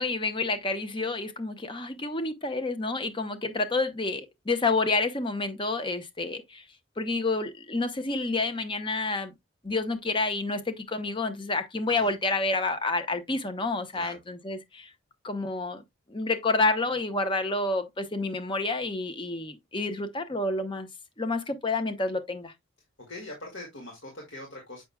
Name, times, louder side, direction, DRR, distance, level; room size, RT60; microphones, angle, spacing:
voice 1, 0.0-6.6 7.0-9.3 9.6-14.9 15.2-15.8 16.1-20.9 21.2-22.5, left 3 dB, 25° left, 0.8 m, -29 dB
voice 2, 23.1-24.8, left 2 dB, 60° left, 2.1 m, -42 dB
7.6 x 5.8 x 2.2 m
head